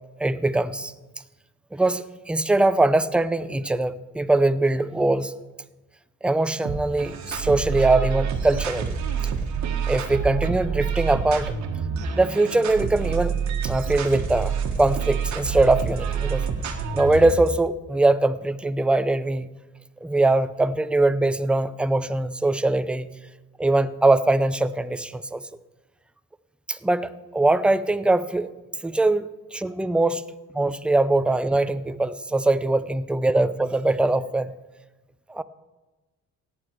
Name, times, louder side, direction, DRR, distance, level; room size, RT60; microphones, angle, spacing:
voice 1, 0.2-0.9 1.7-5.3 6.2-8.9 9.9-11.5 12.2-13.3 13.6-16.5 16.9-19.5 20.0-23.1 23.6-25.4 26.7-28.5 28.8-30.2 30.5-34.5 35.3-35.4, right 2 dB, 5° right, 13 dB, 0.5 m, -22 dB
sound 1, 6.6-17.5, right 6 dB, 65° right, 1.5 m, -27 dB
17.0 x 8.9 x 4.6 m, 1.1 s
cardioid pair, 90°, 30 cm